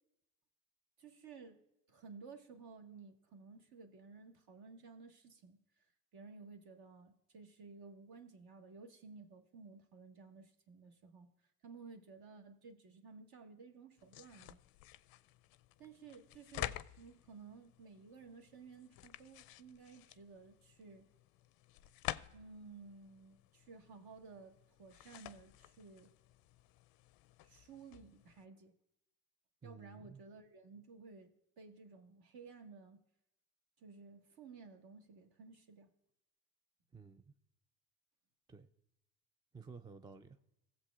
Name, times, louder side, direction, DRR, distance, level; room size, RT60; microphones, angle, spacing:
voice 1, 1.0-5.6 6.1-11.3 11.6-14.6 15.8-21.1 22.3-26.1 27.4-28.7 29.6-33.0 33.8-35.9, right 4 dB, 50° right, 1.6 m, -55 dB
sound 1, 14.0-28.5, left 15 dB, 50° left, 0.5 m, -50 dB
voice 2, 29.6-30.2 36.9-37.3 38.5-38.7 39.5-40.4, right 5 dB, 10° right, 0.4 m, -53 dB
17.0 x 7.6 x 2.4 m
hypercardioid pair, 75°, 48 cm